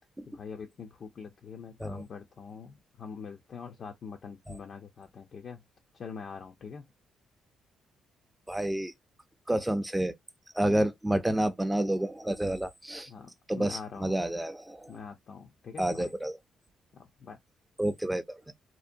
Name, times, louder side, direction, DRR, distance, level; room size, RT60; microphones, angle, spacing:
voice 1, 0.3-5.6 5.9-6.9 10.7-10.8 13.1-14.1 14.9-16.1 16.9-17.4, left 6 dB, 50° left, 0.4 m, -44 dB
voice 2, 8.5-8.9 9.5-10.1 10.5-13.1 13.5-14.9 15.8-16.4 17.8-18.5, right 1 dB, 10° right, 0.4 m, -29 dB
2.7 x 2.1 x 2.5 m
cardioid pair, 90°, 0 cm